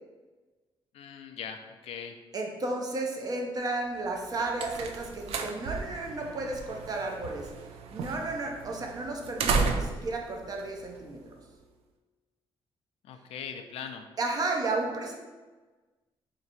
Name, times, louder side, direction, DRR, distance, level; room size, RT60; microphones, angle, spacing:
voice 1, 0.9-2.1 13.0-14.1, left 7 dB, 85° left, 6 dB, 0.4 m, -40 dB
voice 2, 2.3-7.5 7.9-11.2 14.2-15.1, right 2 dB, 40° right, 1 dB, 0.6 m, -33 dB
sound 1, 4.1-11.5, right 4 dB, 90° right, 0.4 m, -34 dB
2.9 x 2.6 x 4.1 m, 1.3 s
cardioid pair, 115°, 10 cm